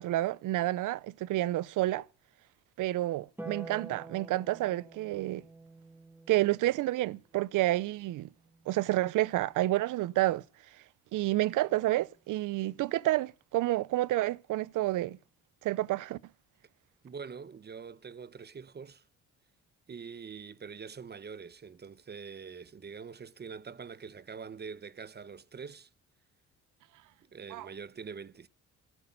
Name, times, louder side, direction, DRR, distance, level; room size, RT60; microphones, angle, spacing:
voice 1, 0.0-2.1 2.8-5.4 6.3-8.3 8.7-10.4 11.1-15.2 15.6-16.2 27.5-27.7, right 16 dB, 80° right, 0.7 m, -29 dB
Harp, 3.4-9.9 11.5-12.5, right 3 dB, 5° right, 2.1 m, -50 dB
voice 2, 17.0-19.0 19.9-25.9 27.2-28.5, right 6 dB, 35° right, 0.9 m, -44 dB
15.0 x 8.2 x 8.8 m
cardioid pair, 80°, 31 cm